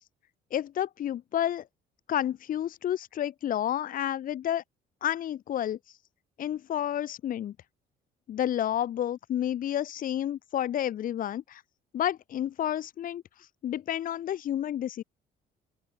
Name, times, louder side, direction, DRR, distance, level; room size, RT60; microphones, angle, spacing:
voice 1, 0.5-1.6 2.1-4.6 5.0-6.0 6.4-7.5 8.3-11.6 11.9-15.0, left 11 dB, 55° left, 1.5 m, -30 dB
open air
cardioid pair, 110°, 17 cm